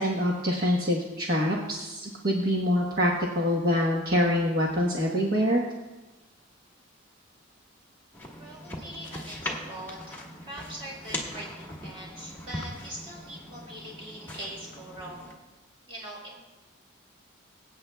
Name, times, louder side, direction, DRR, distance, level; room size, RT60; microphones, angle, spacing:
voice 1, 0.0-5.6, equal, 50° right, -2 dB, 1.1 m, -25 dB
sound 1, 8.1-15.3, left 1 dB, 10° left, 1.5 m, -40 dB
voice 2, 8.4-15.3 15.9-16.4, equal, 25° right, -5 dB, 4.1 m, -42 dB
23.0 x 8.7 x 2.3 m, 1.1 s
head